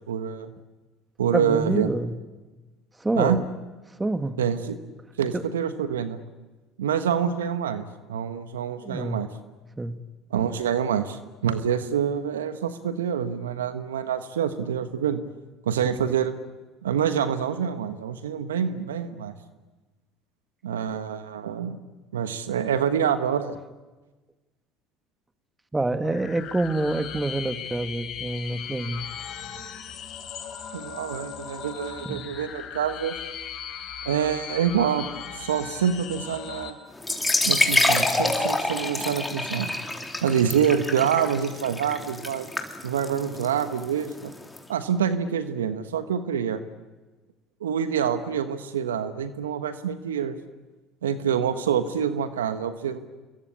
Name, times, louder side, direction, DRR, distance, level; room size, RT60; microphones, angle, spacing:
voice 1, 0.1-0.5 1.2-1.9 3.1-3.4 4.4-4.8 5.2-6.2 6.8-9.3 10.3-15.2 15.7-16.3 16.8-19.3 20.6-21.8 22.1-23.6 30.7-33.2 34.0-35.0 35.3-36.8 37.4-39.7 40.2-42.5 42.8-44.3 44.7-46.6 47.6-50.4 51.0-53.0, right 8 dB, 85° right, 10 dB, 1.3 m, -26 dB
voice 2, 1.3-2.1 3.0-3.4 4.0-4.4 5.3-5.4 8.8-9.2 9.8-10.0 15.8-16.0 25.7-29.0 32.0-32.3 38.0-38.3, right 2 dB, 15° right, 9 dB, 2.1 m, -27 dB
sound 1, 26.0-36.7, left 8 dB, 55° left, 4.7 m, -38 dB
sound 2, 37.0-44.6, left 2 dB, 10° left, 4.0 m, -27 dB
28.0 x 23.0 x 8.6 m, 1.2 s
hypercardioid pair, 65°, 0 cm